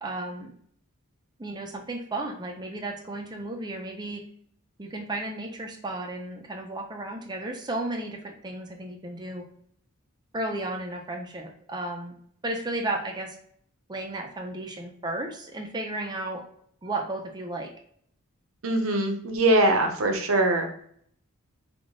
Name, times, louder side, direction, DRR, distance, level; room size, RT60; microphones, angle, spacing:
voice 1, 0.0-0.5 1.4-4.2 4.8-9.4 10.3-12.1 12.4-13.4 13.9-16.4 16.8-17.7, right 2 dB, 20° right, 2 dB, 0.6 m, -33 dB
voice 2, 18.6-20.7, right 1 dB, 70° right, 5 dB, 0.7 m, -22 dB
3.7 x 2.4 x 3.6 m, 0.64 s
head